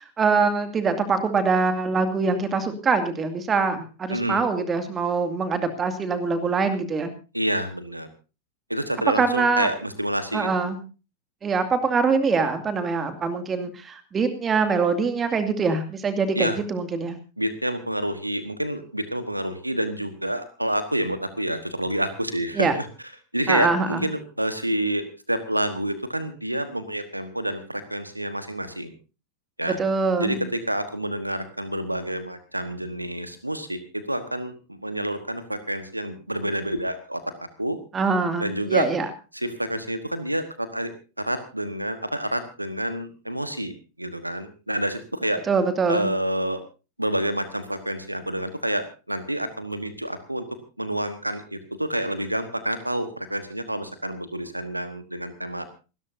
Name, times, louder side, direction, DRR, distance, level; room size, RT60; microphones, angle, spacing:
voice 1, 0.0-7.1 9.2-9.7 10.3-10.8 11.4-17.2 22.5-22.7 23.5-24.1 29.6-30.4 37.9-39.1 45.5-46.1, right 4 dB, 20° right, 8 dB, 2.4 m, -24 dB
voice 2, 4.1-4.4 7.3-8.1 8.7-10.5 16.3-16.6 17.4-22.9 23.3-28.9 29.6-29.8 30.2-37.8 38.4-38.9 39.3-40.9 41.2-45.4 45.9-46.6 47.0-50.4 50.8-55.7, right 1 dB, 85° right, 11 dB, 1.4 m, -28 dB
28.0 x 13.0 x 2.7 m, 0.32 s
figure-of-eight pair, 90°, 0 cm